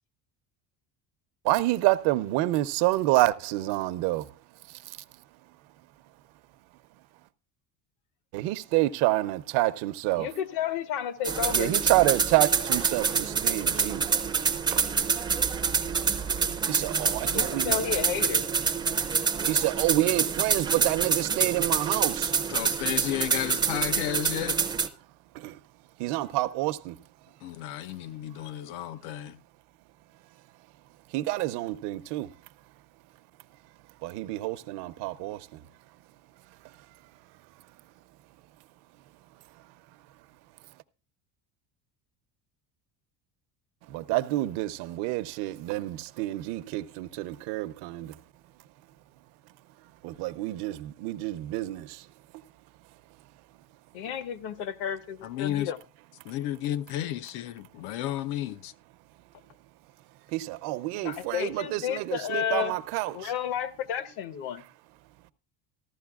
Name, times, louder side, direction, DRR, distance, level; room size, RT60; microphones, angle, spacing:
voice 1, 1.4-4.3 4.7-5.0 8.3-10.3 11.5-14.0 14.7-14.9 16.7-17.8 19.5-22.3 25.3-25.6 26.0-26.9 31.1-32.3 34.0-35.5 43.9-48.2 50.0-52.0 60.3-63.3, right 17 dB, 70° right, 0.7 m, -28 dB
voice 2, 10.2-11.7 17.2-18.4 53.9-55.8 61.0-62.7 63.1-64.6, left 9 dB, 70° left, 1.1 m, -32 dB
sound 1, 11.2-24.9, right 5 dB, 10° right, 0.4 m, -27 dB
voice 3, 22.5-24.6 27.4-29.4 55.2-55.7 56.2-58.7, left 12 dB, 85° left, 0.8 m, -32 dB
15.0 x 12.0 x 2.4 m
cardioid pair, 170°, 41 cm